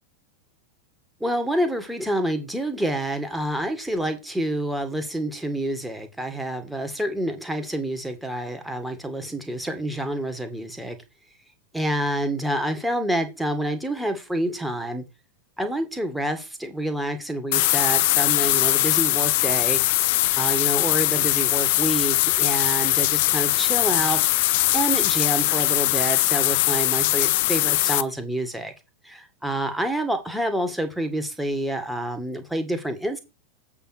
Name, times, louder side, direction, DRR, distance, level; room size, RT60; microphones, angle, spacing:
voice 1, 1.2-11.0 11.7-15.0 15.6-19.8 20.4-24.2 24.7-28.7 29.0-33.2, right 1 dB, ahead, 1.9 m, -28 dB
sound 1, 17.5-28.0, left 17 dB, 50° left, 0.5 m, -21 dB
8.2 x 5.9 x 4.5 m
figure-of-eight pair, 90°, 0 cm